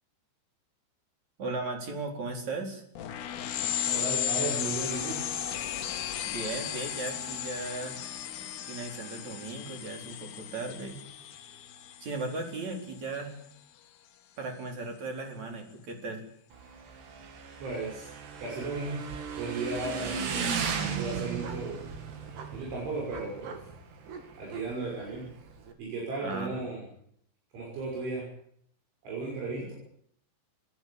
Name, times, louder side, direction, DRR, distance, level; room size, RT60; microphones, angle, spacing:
voice 1, 1.4-2.8 6.2-8.0 8.4-11.0 12.0-13.3 14.4-16.2 26.2-26.6, right 3 dB, 40° right, 3 dB, 5.2 m, -37 dB
sound 1, 3.0-13.1, left 9 dB, 65° left, 2.1 m, -35 dB
voice 2, 3.8-5.3 17.6-18.1 18.4-19.1 19.4-21.8 22.5-23.7 24.4-25.3 25.8-26.9 27.5-28.3 29.0-29.7, right 3 dB, 80° right, -2 dB, 8.8 m, -35 dB
Motorcycle / Engine, 16.5-25.7, right 6 dB, 65° right, 4.5 m, -36 dB
26.5 x 16.5 x 8.9 m, 0.69 s
omnidirectional pair, 5.4 m